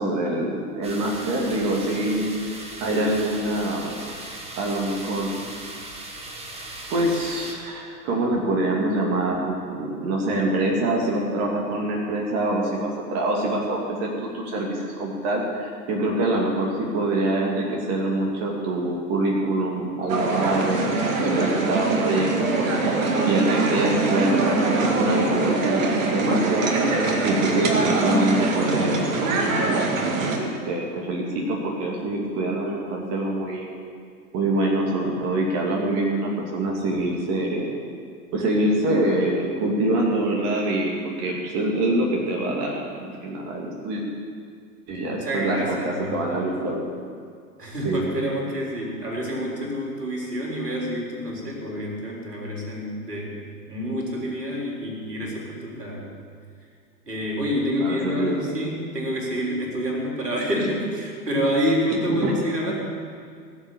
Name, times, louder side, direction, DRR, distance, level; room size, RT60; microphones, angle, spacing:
voice 1, 0.0-2.3 2.8-4.0 4.6-5.4 6.9-22.7 23.2-26.7 27.2-33.7 34.3-37.7 38.3-44.0 44.9-46.8 47.8-48.1 57.8-58.6 62.1-62.3, right 1 dB, 30° right, -2 dB, 2.4 m, -25 dB
sound 1, 0.8-7.5, right 2 dB, 10° right, 1.6 m, -38 dB
sound 2, 20.1-30.4, right 3 dB, 55° right, 2.2 m, -23 dB
voice 2, 45.0-46.5 47.6-53.4 53.7-56.1 57.1-62.8, equal, 75° right, -2 dB, 3.8 m, -28 dB
18.0 x 7.3 x 8.6 m, 2.2 s
figure-of-eight pair, 100°, 48 cm